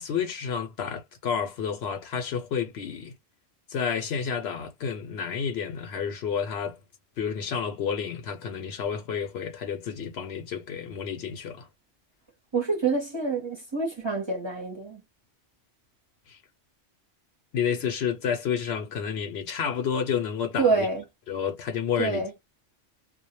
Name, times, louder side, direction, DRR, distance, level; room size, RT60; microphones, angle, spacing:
voice 1, 0.0-3.1 3.7-6.8 7.2-11.7 16.3-16.4 17.5-20.9 21.3-22.2, left 7 dB, 65° left, 0.8 m, -30 dB
voice 2, 12.5-15.0 20.6-21.0 22.0-22.3, right 4 dB, 30° right, 0.6 m, -26 dB
2.1 x 2.1 x 2.8 m
omnidirectional pair, 1.3 m